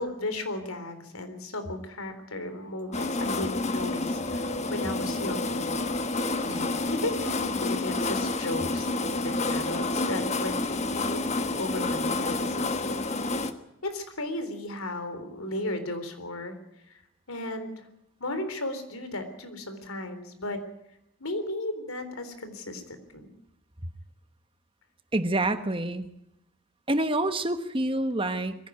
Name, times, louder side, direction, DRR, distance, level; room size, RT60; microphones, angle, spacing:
voice 1, 0.0-5.8 6.4-12.9 13.8-16.5 16.9-17.0 17.3-17.9 18.2-20.6 21.2-23.3 28.2-28.5, left 1 dB, 80° left, 9 dB, 3.7 m, -35 dB
sound 1, 2.9-13.5, left 2 dB, 30° left, 1.3 m, -29 dB
voice 2, 25.1-26.1 26.9-28.6, right 1 dB, 25° right, 9 dB, 1.2 m, -27 dB
22.5 x 16.0 x 9.6 m, 0.80 s
head